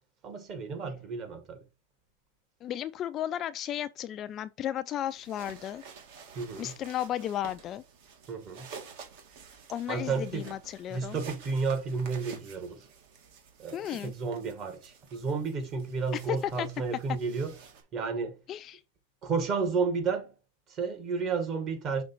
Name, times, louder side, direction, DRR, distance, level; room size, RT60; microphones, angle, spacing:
voice 1, 0.2-1.6 6.3-6.8 8.3-8.7 9.9-10.5 10.9-12.9 13.6-17.6 17.9-18.4 19.2-20.3 20.7-22.0, right 5 dB, 35° right, 1.6 m, -32 dB
voice 2, 2.6-5.8 6.6-7.8 9.7-11.2 13.7-14.1 16.6-16.7 18.5-18.8, left 11 dB, 30° left, 0.3 m, -34 dB
sound 1, 5.1-17.8, right 5 dB, 55° right, 1.9 m, -50 dB
6.2 x 3.4 x 4.4 m
supercardioid pair, 140°, 0 cm